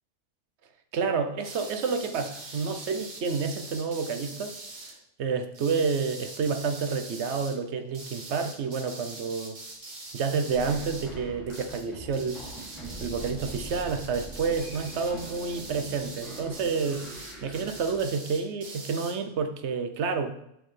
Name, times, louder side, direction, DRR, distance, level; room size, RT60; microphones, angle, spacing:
voice 1, 0.9-4.6 5.2-9.6 10.1-12.4 13.0-17.0 17.4-20.3, right 5 dB, 70° right, 7 dB, 0.9 m, -29 dB
sound 1, 1.4-4.9 5.5-7.6 7.9-11.1 11.5-11.9 12.1-19.2, right 2 dB, 40° right, 1.1 m, -43 dB
sound 2, 10.5-18.1, right 2 dB, ahead, 2.6 m, -43 dB
6.4 x 6.3 x 3.2 m, 0.80 s
omnidirectional pair, 1.3 m